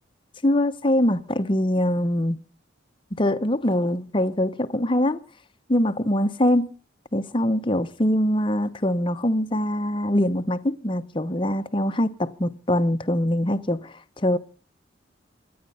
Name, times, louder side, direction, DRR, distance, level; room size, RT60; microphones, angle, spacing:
voice 1, 0.4-2.4 3.1-5.2 5.7-6.7 7.1-14.4, left 1 dB, 25° left, 0.8 m, -23 dB
26.0 x 9.5 x 5.5 m
head